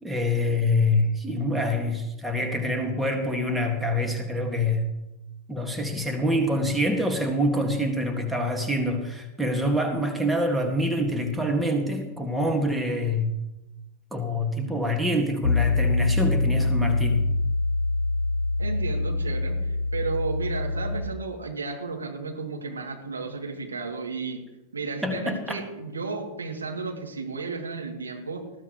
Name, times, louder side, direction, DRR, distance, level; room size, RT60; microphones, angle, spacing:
voice 1, 0.0-4.9 5.5-13.3 14.1-17.3 25.0-25.6, left 1 dB, 5° right, 3 dB, 2.0 m, -25 dB
Piano, 15.4-21.0, left 3 dB, 75° left, 0.7 m, -25 dB
voice 2, 18.6-24.4 24.7-28.5, right 4 dB, 75° right, 1 dB, 2.7 m, -33 dB
20.0 x 15.0 x 3.2 m, 0.97 s
figure-of-eight pair, 90°, 0 cm